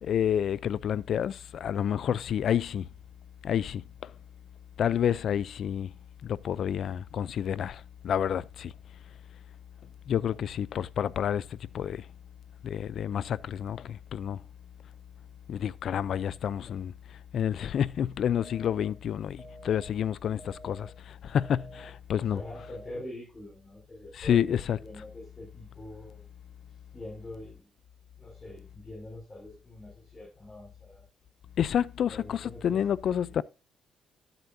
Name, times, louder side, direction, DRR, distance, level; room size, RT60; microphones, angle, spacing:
voice 1, 0.0-2.9 3.4-3.8 4.8-5.9 6.2-8.7 10.1-11.4 11.7-12.0 12.6-14.4 15.5-16.9 17.3-20.9 21.2-22.4 24.1-24.8 31.6-33.4, left 9 dB, 65° left, 0.5 m, -29 dB
sound 1, 18.4-18.9 19.4-19.9 20.4-20.9 21.4-21.9 22.4-22.9, right 2 dB, 5° right, 1.8 m, -49 dB
voice 2, 22.3-26.3 26.9-27.7 28.2-31.0 32.1-32.8 33.2-33.3, left 1 dB, 25° left, 6.2 m, -44 dB
13.0 x 8.0 x 2.7 m
cardioid pair, 90°, 0 cm